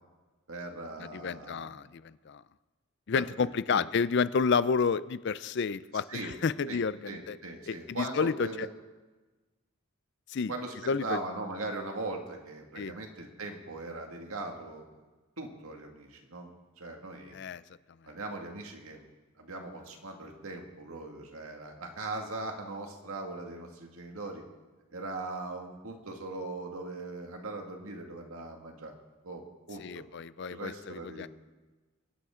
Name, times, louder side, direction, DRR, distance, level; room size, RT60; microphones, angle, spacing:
voice 1, 0.5-1.7 3.1-3.8 6.1-6.4 6.7-8.7 10.5-15.0 15.4-17.5 18.0-19.1 19.4-24.4 24.9-28.9 29.2-30.0 30.5-31.3, right 2 dB, 80° right, 2 dB, 2.0 m, -40 dB
voice 2, 1.0-2.4 3.1-7.4 7.7-8.3 8.6-8.7 10.3-10.5 10.9-11.2 12.8-12.9 17.3-17.6 29.8-31.3, left 5 dB, 55° left, 17 dB, 0.4 m, -30 dB
24.5 x 11.5 x 3.8 m, 1.2 s
head